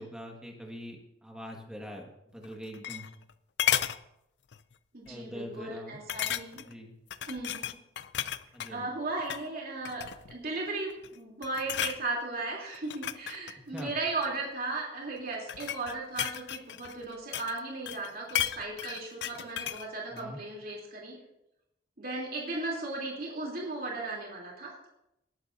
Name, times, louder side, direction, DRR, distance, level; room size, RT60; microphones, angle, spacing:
voice 1, 0.0-3.1 5.0-6.0 6.6-6.9 8.5-8.9 13.7-13.9 20.1-20.4, equal, 5° right, 1 dB, 1.6 m, -43 dB
sound 1, 2.4-3.3 3.6-4.0 4.5-4.7 5.1-5.2 6.1-6.7 7.1-8.7 9.2-9.5 9.8-10.4 10.9-11.2 11.4-12.0 12.7-14.4 15.2-17.6 17.9-19.9 20.2-20.3, left 10 dB, 60° left, 0.5 m, -33 dB
voice 2, 4.9-6.6 7.2-7.7 8.7-21.2 22.0-24.9, right 2 dB, 50° right, -3 dB, 3.0 m, -36 dB
20.0 x 11.5 x 2.6 m, 0.85 s
head